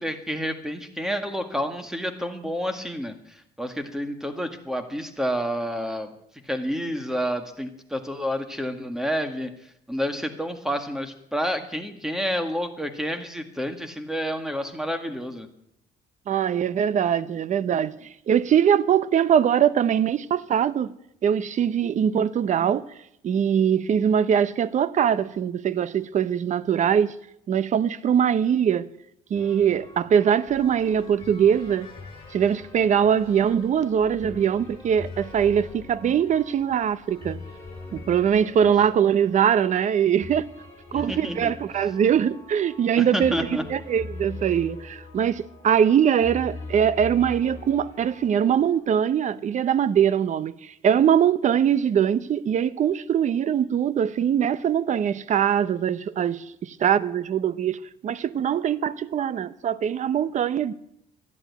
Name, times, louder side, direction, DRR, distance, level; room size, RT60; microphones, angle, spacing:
voice 1, 0.0-6.1 6.5-9.5 9.9-15.5 38.6-38.7 40.9-41.5 43.0-43.6, equal, 5° right, 1.9 m, -29 dB
voice 2, 16.3-20.9 21.2-22.9 23.2-27.1 27.5-28.9 29.3-31.9 32.3-37.4 37.9-40.5 40.9-60.7, right 8 dB, 45° right, 0.8 m, -22 dB
sound 1, 29.3-48.8, left 3 dB, 15° left, 7.1 m, -43 dB
sound 2, 30.5-38.5, left 4 dB, 35° left, 5.6 m, -49 dB
13.0 x 11.5 x 9.4 m
cardioid pair, 110°, 17 cm